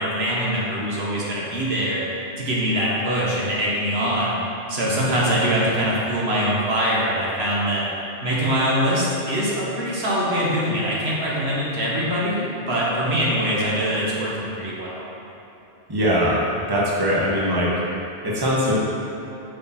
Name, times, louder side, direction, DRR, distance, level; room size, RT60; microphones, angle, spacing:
voice 1, 0.0-2.0 2.4-4.4 4.7-7.8 8.2-15.0, equal, 65° right, -6 dB, 1.5 m, -23 dB
voice 2, 15.9-16.4 16.7-17.7 18.2-18.8, equal, 20° right, -6 dB, 1.2 m, -21 dB
6.6 x 5.6 x 4.3 m, 3.0 s
omnidirectional pair, 1.1 m